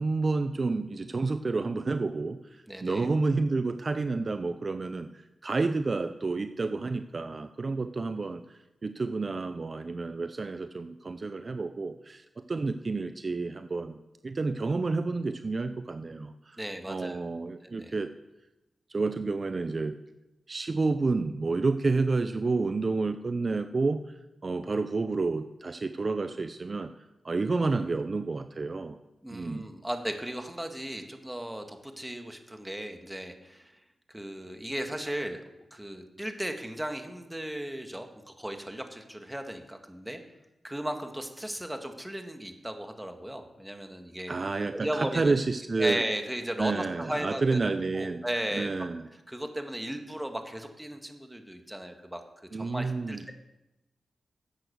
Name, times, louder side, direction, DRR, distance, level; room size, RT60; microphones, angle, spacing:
voice 1, 0.0-16.6 16.9-18.1 18.9-20.0 20.5-24.2 24.4-29.0 29.3-29.6 44.3-46.0 46.6-48.2 48.5-49.0 52.5-53.3, right 3 dB, 50° right, 10 dB, 0.6 m, -30 dB
voice 2, 2.7-3.1 16.6-17.2 17.6-17.9 29.2-33.7 34.1-35.4 35.7-40.2 40.6-44.4 44.7-45.3 45.8-47.6 47.9-48.7 49.3-52.2 52.5-53.3, right 1 dB, 10° right, 5 dB, 1.9 m, -36 dB
11.5 x 8.3 x 6.5 m, 0.95 s
cardioid pair, 50°, 0 cm